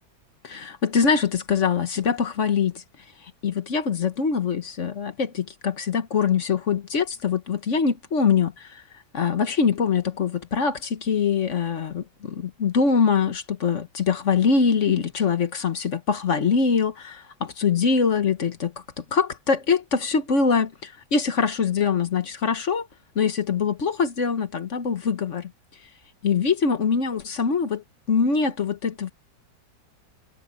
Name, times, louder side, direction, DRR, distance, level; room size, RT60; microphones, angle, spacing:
voice 1, 0.4-2.8 3.4-8.8 9.1-22.9 23.1-25.5 26.2-29.1, left 5 dB, 45° left, 1.3 m, -23 dB
omnidirectional pair, 2.0 m